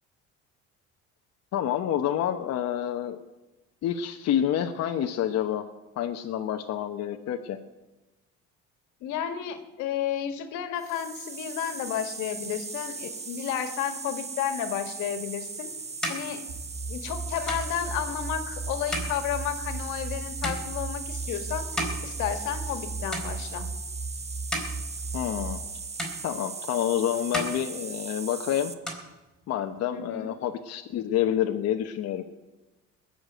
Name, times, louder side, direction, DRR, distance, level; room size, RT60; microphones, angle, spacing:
voice 1, 1.5-3.2 3.8-5.7 6.0-7.6 25.1-25.6 26.2-28.7 29.5-32.2, left 10 dB, 60° left, 5 dB, 1.0 m, -28 dB
voice 2, 9.0-15.7 16.1-16.4 16.9-21.7 22.0-23.7 29.9-30.3, left 9 dB, 85° left, 8 dB, 1.8 m, -32 dB
sound 1, 10.8-28.7, right 4 dB, 20° right, 1.1 m, -38 dB
sound 2, 15.2-22.8 23.1-23.8 24.2-25.7 26.0-26.9 27.2-28.4 28.7-29.8, equal, ahead, 4.1 m, -37 dB
sound 3, 16.5-25.6, right 3 dB, 40° right, 6.4 m, -36 dB
20.5 x 6.8 x 9.2 m, 1.1 s
cardioid pair, 115°, 29 cm